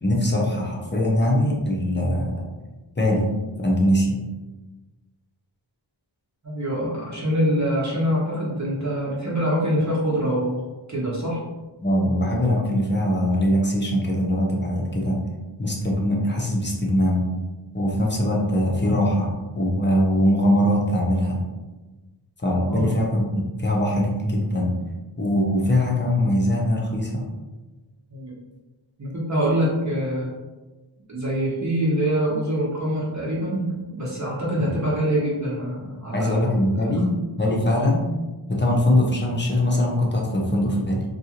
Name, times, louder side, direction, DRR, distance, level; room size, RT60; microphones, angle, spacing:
voice 1, 0.0-2.4 3.0-3.3 3.6-4.2 11.8-15.2 15.6-17.2 17.7-21.4 22.4-24.7 25.2-27.2 34.6-34.7 36.1-38.0 38.5-41.0, left 1 dB, 25° left, -2 dB, 0.7 m, -22 dB
voice 2, 6.4-10.6 10.9-11.4 22.7-22.9 28.1-28.3 29.0-30.3 31.1-36.5 36.8-36.9, equal, 35° right, -6 dB, 0.9 m, -24 dB
2.6 x 2.4 x 2.9 m, 1.2 s
wide cardioid pair, 60°, 47 cm